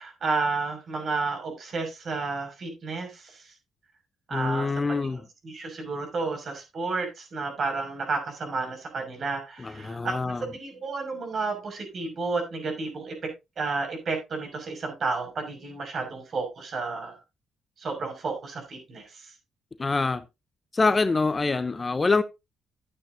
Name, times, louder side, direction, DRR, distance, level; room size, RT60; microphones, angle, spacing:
voice 1, 0.0-3.5 4.3-5.1 5.4-13.1 13.6-17.2 17.8-19.3, right 4 dB, 50° right, 5.9 m, -31 dB
voice 2, 4.3-5.2 9.6-10.4 19.8-20.2 20.7-22.2, left 3 dB, 25° left, 0.7 m, -25 dB
13.5 x 9.0 x 2.7 m
cardioid pair, 90°, 0 cm